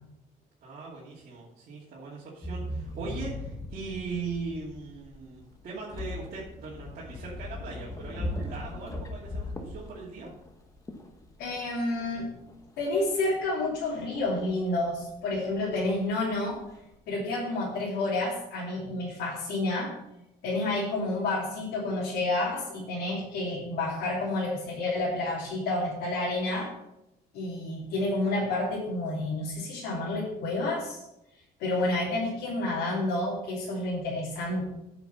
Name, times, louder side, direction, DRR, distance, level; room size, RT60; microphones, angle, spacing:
voice 1, 0.6-10.3, right 4 dB, 50° right, -7 dB, 2.6 m, -39 dB
sound 1, 2.4-16.9, left 1 dB, 20° left, 1.3 m, -39 dB
voice 2, 11.4-12.3 12.8-16.6 17.1-19.9 20.4-26.7 27.3-31.0 31.6-34.6, left 2 dB, 85° left, -6 dB, 3.0 m, -29 dB
9.0 x 6.3 x 5.7 m, 0.87 s
cardioid pair, 110°, 17 cm